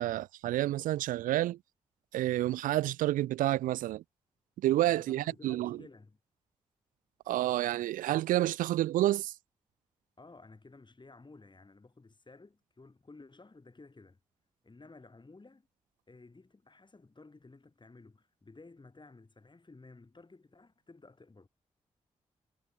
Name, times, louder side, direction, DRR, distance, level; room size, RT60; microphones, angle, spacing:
voice 1, 0.0-1.6 2.1-4.0 4.6-5.8 7.3-9.3, right 14 dB, 90° right, 0.5 m, -29 dB
voice 2, 4.9-6.2 10.2-14.2 14.6-15.7 16.1-21.5, left 3 dB, 35° left, 7.9 m, -55 dB
supercardioid pair, 45°, 14 cm